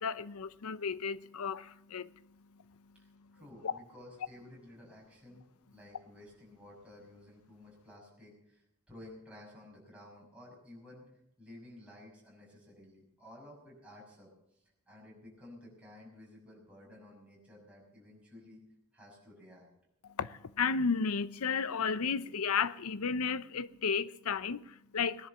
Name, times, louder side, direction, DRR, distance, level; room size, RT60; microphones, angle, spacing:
voice 1, 0.0-2.1 3.2-3.3 3.6-3.8 20.0-25.3, left 5 dB, 75° left, 0.6 m, -33 dB
voice 2, 2.9-5.5 5.7-11.0 11.4-18.6 18.9-19.7, left 1 dB, 5° right, 6.2 m, -54 dB
18.5 x 10.5 x 7.1 m
head